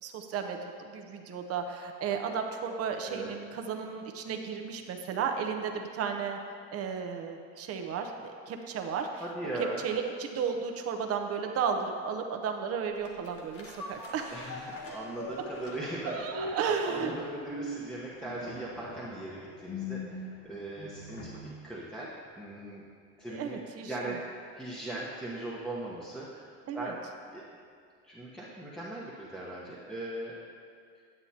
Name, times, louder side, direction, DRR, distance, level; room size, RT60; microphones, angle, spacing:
voice 1, 0.0-6.4 6.7-9.2 9.8-14.3 16.0-17.1 23.3-24.1 26.7-26.9, right 6 dB, 50° right, 4 dB, 0.8 m, -34 dB
voice 2, 9.2-9.8 14.3-16.6 16.8-21.4 21.6-22.1 22.4-22.8 23.2-23.6 23.9-27.0 27.3-27.4 28.0-30.3, right 1 dB, ahead, -6 dB, 1.0 m, -39 dB
sound 1, 13.0-21.6 22.0-22.1, left 2 dB, 50° left, 1.3 m, -42 dB
9.5 x 8.7 x 2.8 m, 2.2 s
cardioid pair, 120°, 30 cm